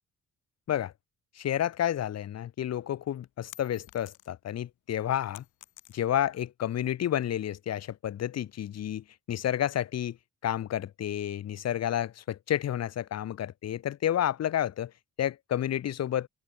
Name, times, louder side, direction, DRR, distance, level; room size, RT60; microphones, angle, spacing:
voice 1, 1.4-5.4 5.9-10.2 10.4-14.9 15.2-16.3, left 11 dB, 55° left, 1.1 m, -30 dB
sound 1, 3.3-4.5 4.9-6.3, left 13 dB, 80° left, 3.9 m, -51 dB
open air
cardioid pair, 90°, 30 cm